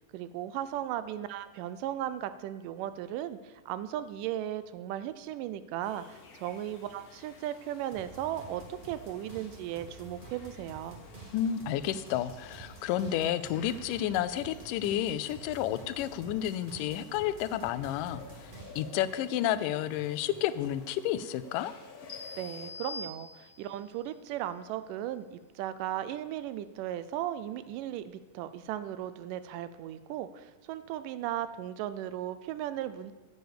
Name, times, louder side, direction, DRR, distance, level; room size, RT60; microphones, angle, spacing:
voice 1, 0.1-11.0 22.4-33.1, right 12 dB, 80° right, 13 dB, 2.1 m, -36 dB
sound 1, 5.8-22.7, left 5 dB, 60° left, 1.7 m, -53 dB
sound 2, 7.9-19.1 19.4-20.8, right 3 dB, 45° right, 0.6 m, -50 dB
voice 2, 11.3-21.7, left 11 dB, 80° left, 14 dB, 2.1 m, -31 dB
sound 3, 22.1-23.8, left 3 dB, 45° left, 0.9 m, -43 dB
9.5 x 7.8 x 6.7 m, 1.2 s
omnidirectional pair, 3.8 m